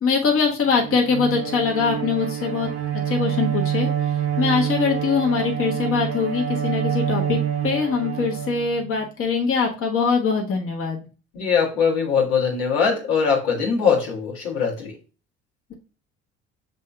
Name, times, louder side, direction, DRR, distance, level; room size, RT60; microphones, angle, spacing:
voice 1, 0.0-11.0, left 5 dB, 40° left, 0 dB, 1.2 m, -23 dB
Bowed string instrument, 0.7-9.1, right 9 dB, 45° right, 0.9 m, -26 dB
voice 2, 11.3-14.9, left 6 dB, 75° left, -2 dB, 1.4 m, -21 dB
7.4 x 2.8 x 2.2 m, 0.33 s
figure-of-eight pair, 55°, 33 cm